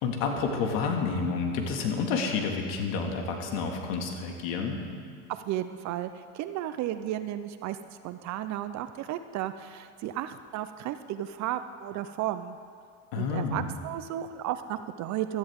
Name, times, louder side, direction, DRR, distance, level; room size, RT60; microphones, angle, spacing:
voice 1, 0.0-4.8 13.1-13.7, left 5 dB, 65° left, 2 dB, 2.2 m, -29 dB
voice 2, 5.3-12.6 13.2-15.4, right 12 dB, 45° right, 11 dB, 0.6 m, -34 dB
15.5 x 13.0 x 3.6 m, 2.2 s
supercardioid pair, 100°, 39 cm